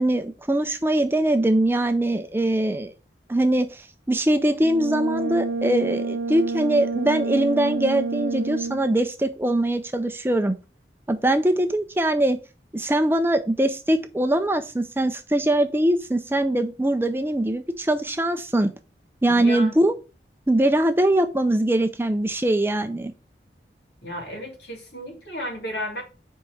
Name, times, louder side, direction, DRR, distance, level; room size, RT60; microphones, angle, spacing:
voice 1, 0.0-2.9 3.3-10.6 11.1-12.4 12.7-18.7 19.2-19.9 20.5-23.1, right 1 dB, 15° right, 0.5 m, -22 dB
Brass instrument, 4.6-9.0, right 4 dB, 90° right, 0.5 m, -28 dB
voice 2, 19.3-19.8 24.0-26.0, equal, 70° left, 2.8 m, -33 dB
5.4 x 4.7 x 6.2 m
head